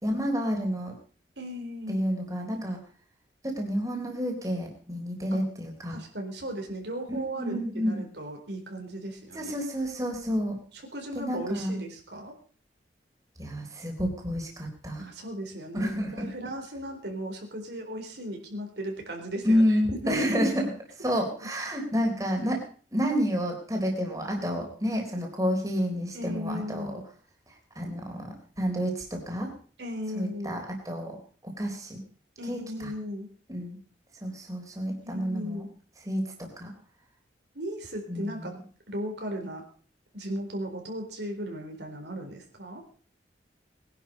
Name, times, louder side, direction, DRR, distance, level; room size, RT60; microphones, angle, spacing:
voice 1, 0.0-0.9 1.9-2.8 3.4-6.0 7.1-8.0 9.3-10.6 11.2-11.8 13.4-15.1 15.7-16.3 19.4-20.7 21.0-22.6 22.9-27.0 27.8-29.5 30.2-31.2 31.6-32.0 32.5-32.6 33.5-33.8 34.2-35.6 36.1-36.7 38.1-38.4, equal, 20° right, 1 dB, 3.8 m, -29 dB
voice 2, 1.4-2.0 5.3-5.4 5.9-9.6 10.7-12.3 15.0-20.3 21.4-21.5 26.1-27.0 29.8-30.6 32.4-33.3 35.0-35.7 37.5-38.5 38.9-39.6 40.1-42.8, equal, 75° right, 2 dB, 4.2 m, -36 dB
21.0 x 11.0 x 5.4 m, 0.43 s
head